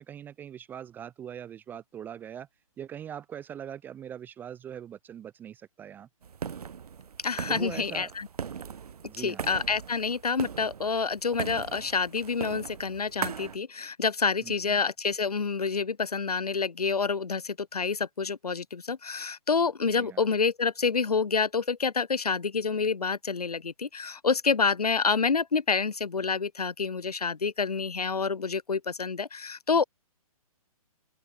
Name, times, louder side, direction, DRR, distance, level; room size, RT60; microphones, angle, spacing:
voice 1, 0.0-2.5 2.8-6.1 7.5-8.1 9.1-9.5 14.4-14.8 20.0-20.2, right 9 dB, 10° right, 0.5 m, -41 dB
sound 1, 6.2-13.6, right 7 dB, 80° right, 0.4 m, -39 dB
voice 2, 7.2-8.3 9.2-29.8, left 5 dB, 90° left, 0.6 m, -28 dB
figure-of-eight pair, 130°, 19 cm